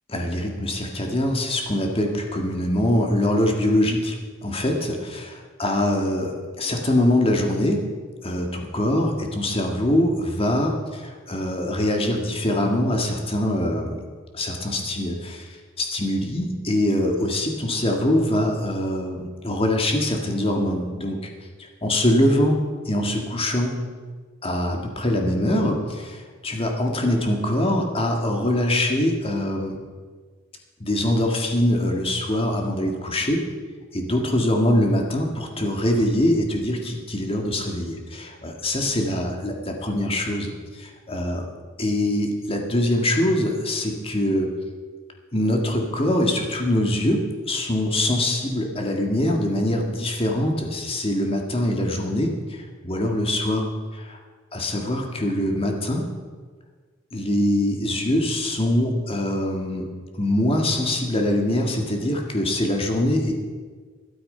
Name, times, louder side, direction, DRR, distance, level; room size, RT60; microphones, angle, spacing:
voice 1, 0.1-7.8 8.2-14.0 14.3-15.5 15.8-21.2 21.8-22.6 22.9-23.8 24.4-29.8 30.8-33.4 33.9-41.5 41.8-44.5 45.3-54.2 54.5-56.0 57.1-59.9 60.2-63.3, left 1 dB, 30° left, 2 dB, 1.9 m, -23 dB
13.0 x 12.0 x 5.5 m, 1.5 s
head